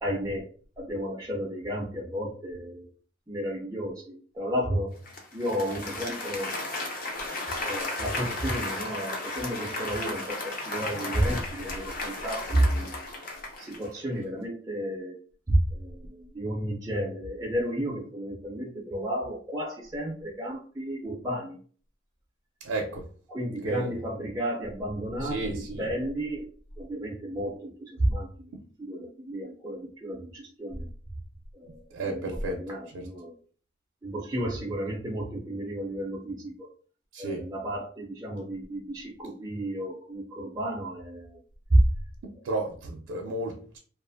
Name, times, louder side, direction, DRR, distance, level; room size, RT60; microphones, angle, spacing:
voice 1, 0.0-0.5 0.8-2.9 3.3-4.9 5.3-6.5 7.6-13.1 13.6-15.2 15.5-21.6 23.3-26.5 26.8-28.5 28.8-30.9 31.5-33.4 34.0-36.7 37.2-41.4 41.7-41.8, right 1 dB, 15° right, -3 dB, 0.4 m, -31 dB
Applause, 5.1-14.0, left 2 dB, 45° left, 0.6 m, -34 dB
voice 2, 22.6-23.1 23.6-24.0 25.2-25.9 31.9-32.6 32.9-33.1 37.1-37.5 42.2-43.8, right 2 dB, 90° right, 1 dB, 0.4 m, -33 dB
2.5 x 2.4 x 2.4 m, 0.43 s
head